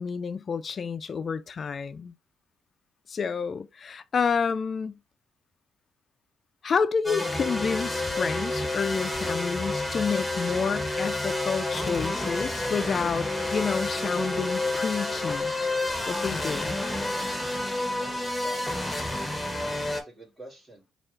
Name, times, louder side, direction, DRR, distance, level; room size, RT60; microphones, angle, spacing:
voice 1, 0.0-2.1 3.1-5.0 6.6-15.5 16.1-16.7, left 6 dB, 50° left, 0.3 m, -29 dB
sound 1, 7.0-20.0, left 2 dB, 5° left, 1.2 m, -29 dB
voice 2, 17.9-19.0 19.6-20.9, right 1 dB, 25° right, 2.3 m, -47 dB
4.4 x 2.4 x 3.2 m
supercardioid pair, 70°, 0 cm